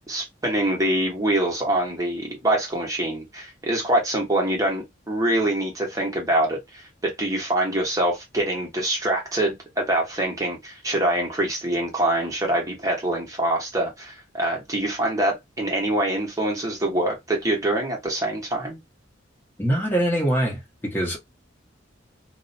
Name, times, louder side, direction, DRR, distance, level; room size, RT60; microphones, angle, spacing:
voice 1, 0.1-18.8, right 1 dB, 15° right, 0.9 m, -25 dB
voice 2, 19.6-21.2, right 1 dB, 10° left, 0.9 m, -23 dB
2.5 x 2.1 x 2.5 m
head